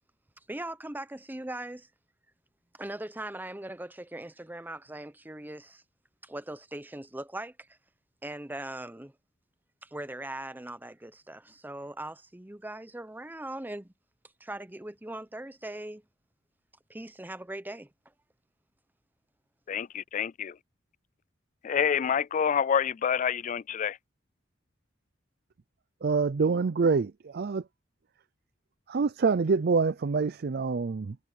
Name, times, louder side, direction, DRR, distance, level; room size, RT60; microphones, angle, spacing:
voice 1, 0.5-1.9 2.7-5.8 6.2-7.8 8.2-9.1 9.8-13.9 14.4-16.0 16.9-17.9, right 1 dB, 10° right, 0.7 m, -40 dB
voice 2, 19.7-20.5 21.6-24.0, left 7 dB, 40° left, 0.3 m, -27 dB
voice 3, 26.0-27.6 28.9-31.2, right 4 dB, 55° right, 0.5 m, -26 dB
head